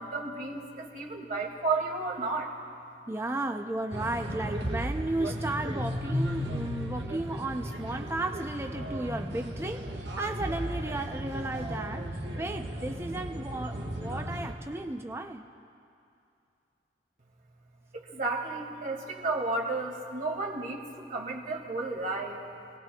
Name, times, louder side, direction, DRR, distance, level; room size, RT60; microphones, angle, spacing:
voice 1, 0.0-2.5 17.9-22.4, right 3 dB, 45° right, -1 dB, 2.0 m, -32 dB
voice 2, 3.1-15.4, right 2 dB, 15° right, 4 dB, 0.5 m, -34 dB
sound 1, 3.9-14.5, equal, 75° right, 1.4 m, -35 dB
28.0 x 19.0 x 2.3 m, 2.5 s
head